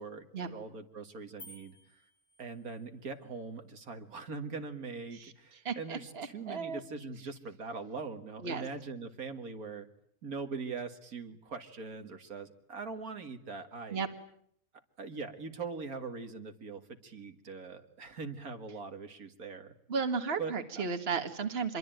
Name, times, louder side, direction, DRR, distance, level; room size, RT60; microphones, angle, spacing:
voice 1, 0.0-2.0 2.4-9.9 10.2-14.0 15.0-19.7 20.4-20.8, right 4 dB, 75° right, 7 dB, 2.4 m, -42 dB
sound 1, 1.4-2.9, left 1 dB, 80° left, 4.5 m, -54 dB
voice 2, 5.7-6.8 8.4-8.6 13.9-14.1 19.9-21.8, right 5 dB, 45° right, 7 dB, 2.0 m, -34 dB
26.0 x 23.0 x 9.2 m, 0.68 s
omnidirectional pair, 1.5 m